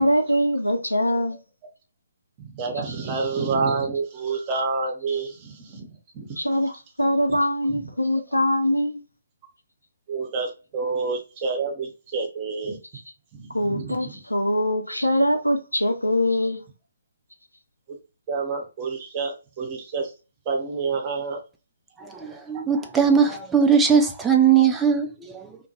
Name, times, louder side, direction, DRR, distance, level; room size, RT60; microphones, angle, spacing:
voice 1, 0.0-1.4 6.4-6.7 7.0-9.0 13.5-16.6, equal, 85° left, 0.6 m, -22 dB
voice 2, 2.4-5.9 6.1-6.4 7.3-7.4 7.7-7.9 8.3-8.4 10.1-12.8 13.3-14.2 18.3-20.1 20.5-21.4, right 4 dB, 25° right, 0.7 m, -28 dB
voice 3, 22.0-25.6, right 7 dB, 10° right, 0.3 m, -20 dB
2.2 x 2.2 x 2.7 m
figure-of-eight pair, 135°, 0 cm